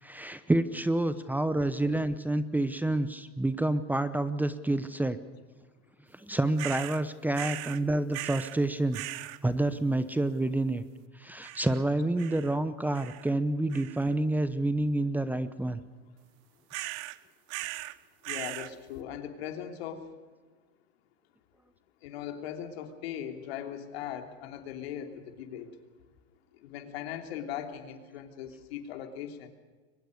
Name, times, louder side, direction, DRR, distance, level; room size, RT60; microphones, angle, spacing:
voice 1, 0.0-5.2 6.1-9.0 9.4-10.8 11.1-15.8, right 1 dB, 5° right, 13 dB, 0.8 m, -28 dB
sound 1, 6.6-7.0 7.3-7.8 8.1-8.6 8.9-9.4 11.4-11.8 12.2-12.6 12.9-13.3 13.7-14.1 16.7-17.2 17.5-18.0 18.2-18.7, right 19 dB, 50° right, 0.9 m, -39 dB
voice 2, 18.2-20.1 22.0-25.7 26.6-29.5, left 9 dB, 75° left, 5 dB, 3.2 m, -39 dB
23.0 x 20.5 x 6.6 m, 1.4 s
supercardioid pair, 135°, 31 cm